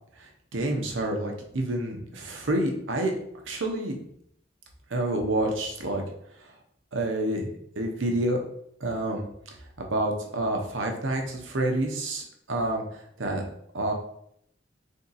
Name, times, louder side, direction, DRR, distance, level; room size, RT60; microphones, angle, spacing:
voice 1, 0.2-3.1 3.5-4.0 4.9-6.0 6.4-6.5 6.9-7.5 7.8-8.4 8.8-9.2 9.8-13.4 13.7-13.9, right 1 dB, 80° right, 2 dB, 0.8 m, -28 dB
3.5 x 2.7 x 4.0 m, 0.70 s
head